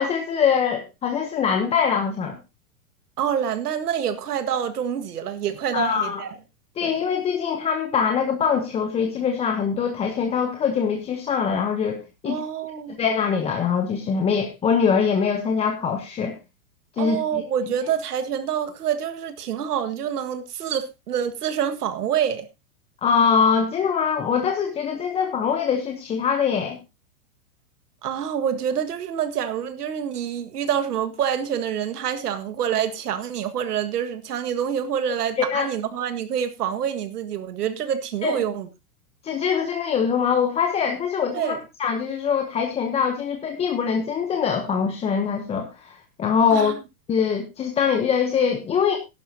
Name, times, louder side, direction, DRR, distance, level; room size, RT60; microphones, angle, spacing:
voice 1, 0.0-2.4 5.7-6.2 6.8-12.4 13.0-16.4 17.0-17.4 23.0-26.8 35.4-35.7 38.2-38.4 39.2-46.7 47.1-49.0, left 6 dB, 15° left, 0.9 m, -23 dB
voice 2, 3.2-6.3 6.8-6.9 12.3-13.0 17.0-22.5 28.0-38.7 41.3-41.6 46.5-46.7, right 8 dB, 85° right, 1.9 m, -27 dB
14.5 x 11.5 x 2.8 m
hypercardioid pair, 150°, 45 cm